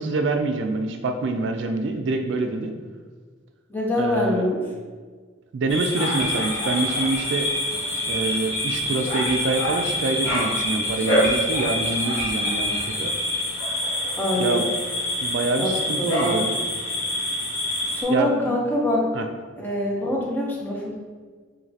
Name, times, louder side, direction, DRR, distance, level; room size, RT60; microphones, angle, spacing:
voice 1, 0.0-2.7 4.0-4.4 5.5-7.5 8.0-13.1 14.4-14.6 15.2-16.6 18.1-18.6 19.1-19.3, right 3 dB, 60° right, 6 dB, 0.3 m, -26 dB
voice 2, 3.7-4.6 14.2-14.7 15.6-15.7 16.0-16.4 17.9-19.1 19.6-20.9, left 1 dB, 10° left, -3 dB, 0.7 m, -24 dB
sound 1, 5.7-18.0, left 1 dB, 70° left, 1.2 m, -26 dB
sound 2, 5.8-13.4, left 1 dB, 45° left, 1.4 m, -34 dB
4.9 x 3.2 x 2.8 m, 1.5 s
head